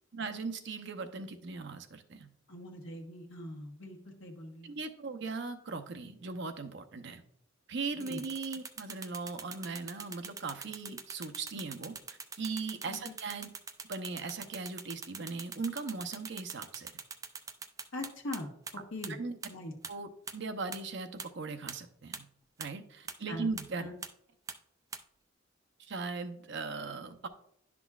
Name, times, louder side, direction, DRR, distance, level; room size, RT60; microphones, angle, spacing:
voice 1, 0.1-2.3 4.6-7.2 7.7-13.5 13.9-16.9 19.2-19.4 19.9-22.3 22.6-23.9 25.8-27.3, right 4 dB, 60° right, 8 dB, 0.7 m, -39 dB
voice 2, 2.5-4.7 8.0-8.2 12.9-13.1 17.9-19.2 19.5-19.7 23.3-23.5 23.8-23.9, left 1 dB, 75° left, 1 dB, 1.2 m, -42 dB
sound 1, 8.0-18.4 18.7-18.8 19.0-19.1 19.4-19.5 19.8-19.9 20.3-20.4 20.7-20.8 21.2-21.3 21.7-21.8 22.1-22.2 22.6-22.7 23.1-23.2 23.6-23.7 24.0-24.1 24.5-24.6 24.9-25.0, right 5 dB, 15° right, 0.3 m, -42 dB
11.0 x 6.0 x 2.4 m, 0.71 s
head